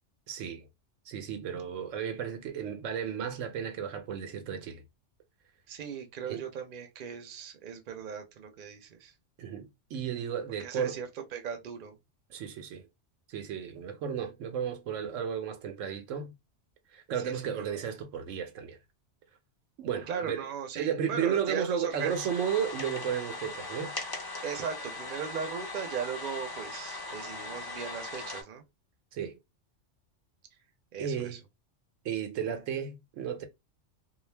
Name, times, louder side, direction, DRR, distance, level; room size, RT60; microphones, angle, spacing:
voice 1, 0.3-0.7 1.1-4.8 6.2-6.5 9.4-11.0 12.3-12.9 13.3-16.3 16.9-18.8 19.8-20.4 20.7-24.0 29.1-29.4 31.0-31.4 32.0-33.4, right 8 dB, 85° right, 1.0 m, -33 dB
voice 2, 5.7-9.1 10.6-12.0 17.2-17.4 20.1-22.2 24.4-28.6 30.9-31.4, right 7 dB, 50° right, 0.7 m, -38 dB
sound 1, 21.9-28.4, left 2 dB, 35° left, 0.4 m, -39 dB
2.4 x 2.2 x 3.2 m
omnidirectional pair, 1.3 m